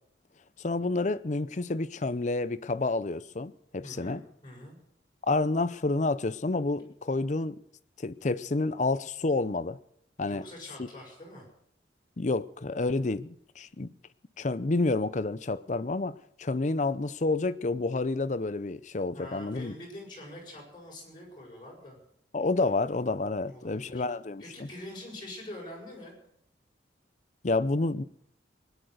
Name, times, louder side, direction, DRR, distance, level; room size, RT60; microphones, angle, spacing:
voice 1, 0.6-4.2 5.3-7.6 8.0-9.8 10.2-10.4 10.8-10.9 12.2-13.9 14.4-19.7 22.3-24.7 27.4-28.0, left 3 dB, 40° left, 0.6 m, -29 dB
voice 2, 3.8-4.8 10.3-11.5 19.1-22.0 23.5-24.0 24.4-26.1, left 1 dB, 25° left, 6.9 m, -45 dB
20.0 x 10.0 x 6.5 m
head